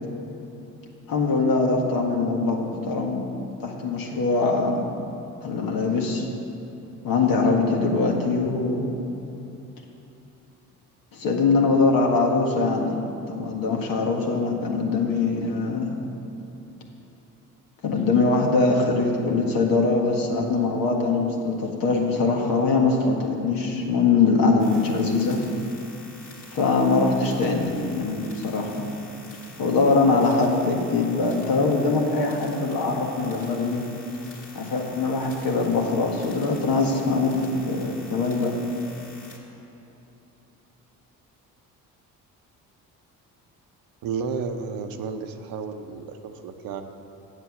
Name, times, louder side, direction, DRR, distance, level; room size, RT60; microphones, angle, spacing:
voice 1, 1.1-3.2 3.6-4.9 5.4-6.2 7.0-8.9 11.1-13.0 13.3-16.0 17.8-25.4 26.5-28.9 29.6-33.8 34.5-38.5, left 3 dB, 65° left, 0 dB, 1.7 m, -22 dB
sound 1, 24.6-39.4, left 3 dB, 50° left, 2.4 m, -46 dB
voice 2, 44.0-46.8, right 5 dB, 70° right, 7 dB, 0.9 m, -32 dB
8.1 x 7.4 x 7.2 m, 3.0 s
supercardioid pair, 65°, 36 cm